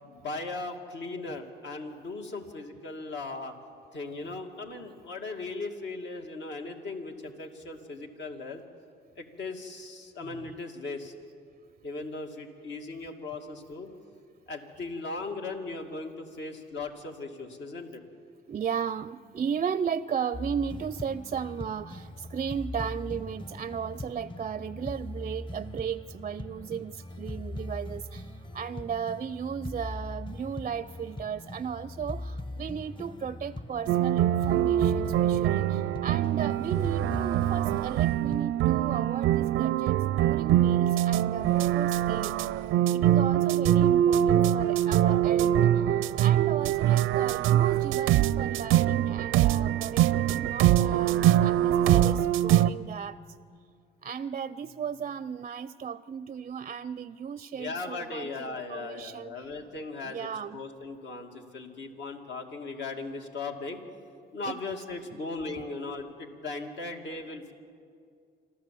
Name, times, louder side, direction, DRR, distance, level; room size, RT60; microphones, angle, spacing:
voice 1, 0.0-3.5 3.9-8.6 9.2-11.1 11.8-13.9 14.5-18.0 44.6-45.3 57.6-63.8 64.3-67.5, left 3 dB, 65° left, 3 dB, 2.4 m, -38 dB
voice 2, 10.2-10.5 18.5-42.4 42.9-53.2 54.0-59.5 60.0-60.6 64.4-64.6 65.1-65.3, right 7 dB, 35° right, 16 dB, 0.4 m, -35 dB
sound 1, 20.3-38.5, left 1 dB, 25° left, 1.1 m, -40 dB
sound 2, 33.9-52.7, right 12 dB, 90° right, 0.5 m, -24 dB
26.5 x 13.5 x 7.6 m, 2.2 s
cardioid pair, 90°, 20 cm